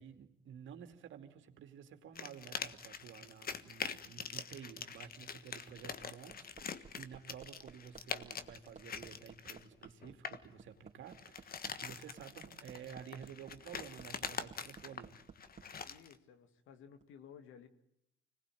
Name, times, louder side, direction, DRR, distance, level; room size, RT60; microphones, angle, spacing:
voice 1, 0.0-15.2, right 8 dB, 75° right, 8 dB, 2.6 m, -52 dB
sound 1, 2.2-10.5 11.1-16.1, left 6 dB, 50° left, 1.5 m, -44 dB
Hammer, 5.8-15.7 17.0-17.1, right 5 dB, 35° right, 3.4 m, -55 dB
voice 2, 15.8-17.7, left 8 dB, 90° left, 9 dB, 2.4 m, -56 dB
25.5 x 19.5 x 9.2 m, 0.77 s
cardioid pair, 90°, 20 cm